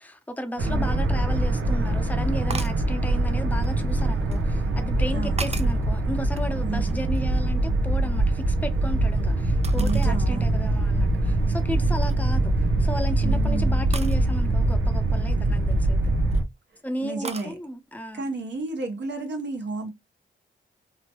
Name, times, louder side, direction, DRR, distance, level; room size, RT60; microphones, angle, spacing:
voice 1, 0.0-16.0 16.8-18.3, equal, 10° left, 0.7 m, -34 dB
sound 1, 0.6-16.4, right 2 dB, 85° right, 0.7 m, -23 dB
sound 2, 2.5-2.9 3.6-4.4 5.0-5.9 6.3-7.4 7.7-9.0 9.6-10.2 10.7-10.8 11.4-11.6 12.0-12.4 13.9-14.2 15.9-16.4 17.2-17.5, right 4 dB, 30° right, 0.4 m, -38 dB
voice 2, 5.1-5.4 6.6-7.1 9.7-10.6 13.2-13.9 16.7-17.6 18.1-19.9, right 3 dB, 60° right, 1.0 m, -32 dB
2.9 x 2.1 x 2.9 m
cardioid pair, 55°, 21 cm